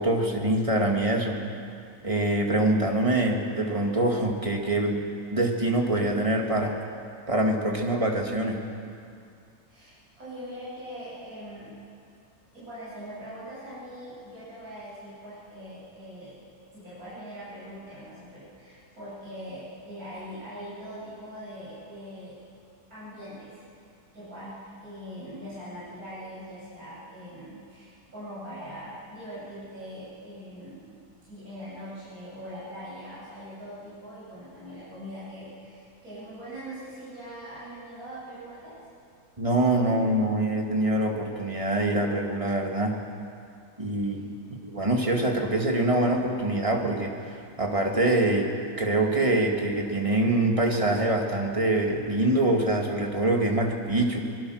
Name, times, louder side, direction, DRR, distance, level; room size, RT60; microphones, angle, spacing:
voice 1, 0.0-1.4 2.0-5.0 5.3-6.8 7.3-8.6 39.4-43.0 43.8-44.3 44.6-48.5 48.8-54.2, right 1 dB, 20° right, 1 dB, 2.2 m, -24 dB
voice 2, 9.7-11.7 12.5-16.4 16.7-22.3 22.9-23.6 24.1-31.0 31.3-38.7 44.0-44.5, equal, 70° right, -11 dB, 8.7 m, -42 dB
23.5 x 20.5 x 6.4 m, 2.4 s
omnidirectional pair, 1.6 m